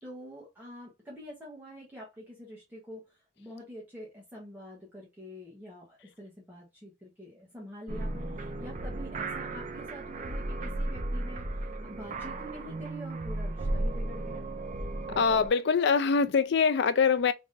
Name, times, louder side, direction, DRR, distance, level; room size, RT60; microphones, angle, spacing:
voice 1, 0.0-14.5, equal, 10° right, 1.0 m, -46 dB
sound 1, 7.9-15.5, right 2 dB, 40° right, 0.5 m, -35 dB
voice 2, 15.2-17.3, left 5 dB, 60° left, 0.4 m, -24 dB
3.4 x 3.0 x 2.5 m
head